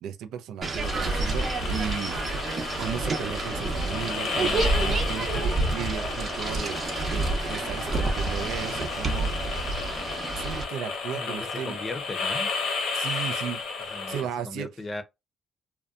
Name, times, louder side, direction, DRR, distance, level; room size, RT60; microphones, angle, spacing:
voice 1, 0.0-2.2 2.8-6.8 7.1-9.3 10.3-11.8 12.9-13.6 14.1-14.7, right 8 dB, 90° right, 0.4 m, -35 dB
sound 1, 0.6-10.7, right 3 dB, 45° right, 0.7 m, -29 dB
sound 2, 0.8-14.2, left 4 dB, 85° left, 0.8 m, -33 dB
voice 2, 11.1-12.5 13.9-14.2 14.4-15.0, left 2 dB, 30° left, 0.6 m, -36 dB
2.6 x 2.2 x 2.4 m
cardioid pair, 90°, 0 cm